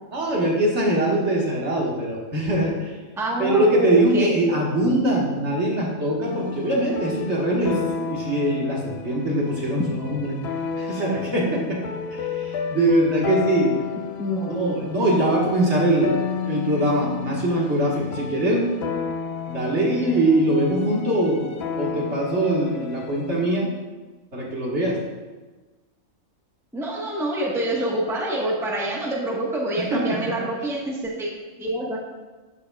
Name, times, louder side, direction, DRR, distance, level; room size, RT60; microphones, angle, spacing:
voice 1, 0.1-3.0 3.4-10.4 10.8-11.8 12.1-13.7 14.5-16.2 16.4-18.7 19.5-21.5 21.8-23.7 24.3-25.0 29.8-30.3, right 1 dB, 55° right, -3 dB, 1.9 m, -22 dB
voice 2, 3.2-4.6 14.2-14.7 26.7-31.3 31.6-32.0, right 1 dB, ahead, -3 dB, 1.2 m, -26 dB
sound 1, 6.2-23.5, left 7 dB, 60° left, 0.8 m, -32 dB
11.5 x 8.4 x 2.3 m, 1.3 s
omnidirectional pair, 1.4 m